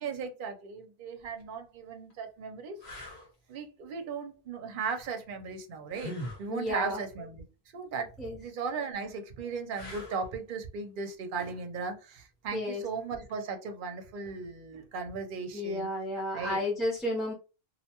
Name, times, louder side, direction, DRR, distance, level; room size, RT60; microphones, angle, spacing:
voice 1, 0.0-2.8 3.5-7.4 7.7-8.1 8.4-15.9 16.3-16.6, right 5 dB, 60° right, 5 dB, 0.7 m, -37 dB
sound 1, 1.2-1.4 2.1-2.2 2.8-3.3 5.9-6.5 9.7-10.3 13.3-13.5, left 1 dB, 90° left, 1.3 m, -41 dB
voice 2, 6.5-7.0 8.2-8.4 12.5-12.8 15.5-17.3, left 1 dB, ahead, -3 dB, 0.6 m, -32 dB
2.6 x 2.1 x 2.8 m, 0.32 s
omnidirectional pair, 1.0 m